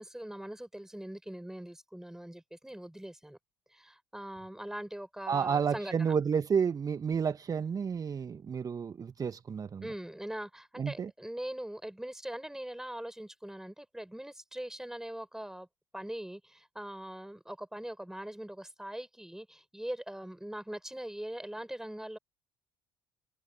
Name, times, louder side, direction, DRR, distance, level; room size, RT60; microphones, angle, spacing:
voice 1, 0.0-3.4 3.7-6.1 9.8-15.7 15.9-22.2, right 1 dB, 5° right, 6.3 m, -42 dB
voice 2, 5.3-9.9 10.8-11.1, right 6 dB, 35° right, 1.0 m, -31 dB
hypercardioid pair, 60°, 11 cm